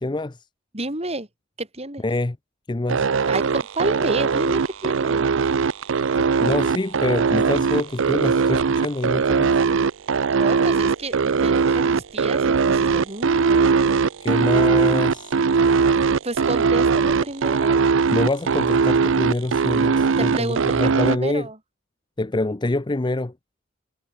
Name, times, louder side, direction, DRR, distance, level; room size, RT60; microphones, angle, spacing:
voice 1, 0.0-0.4 2.0-2.4 2.7-3.1 6.2-9.6 14.2-15.3 18.1-21.5 22.2-23.3, left 2 dB, 20° left, 0.6 m, -25 dB
voice 2, 0.7-1.3 1.6-2.0 3.3-5.3 10.3-13.8 16.2-17.9 20.2-21.6, right 2 dB, 30° right, 4.3 m, -30 dB
sound 1, 2.9-21.2, right 5 dB, 70° right, 0.5 m, -20 dB
head